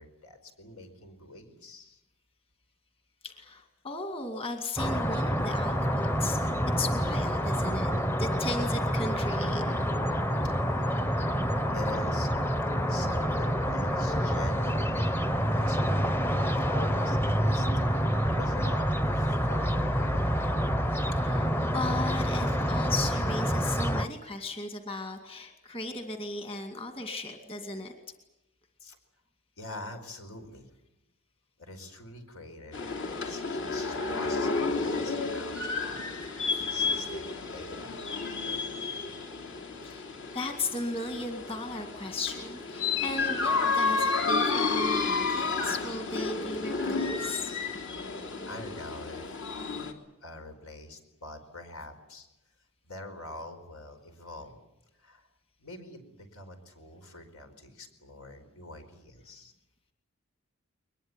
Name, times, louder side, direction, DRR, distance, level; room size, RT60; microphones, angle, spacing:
voice 1, 0.0-2.0 10.5-11.0 11.7-12.3 12.9-15.9 16.7-20.5 28.8-29.0 29.6-30.7 31.6-36.1 36.5-38.0 48.0-49.3 50.2-52.3 52.8-54.6 55.0-55.3 55.6-59.5, left 2 dB, 80° left, 7 dB, 4.8 m, -45 dB
voice 2, 3.2-7.9 8.2-9.6 21.1-27.9 39.8-40.1 40.3-47.5, left 2 dB, 25° left, 5 dB, 2.3 m, -36 dB
sound 1, 4.8-24.1, equal, 10° left, 0.9 m, -27 dB
sound 2, 32.7-49.9, left 4 dB, 60° left, 3.2 m, -31 dB
22.5 x 21.0 x 9.9 m, 0.93 s
head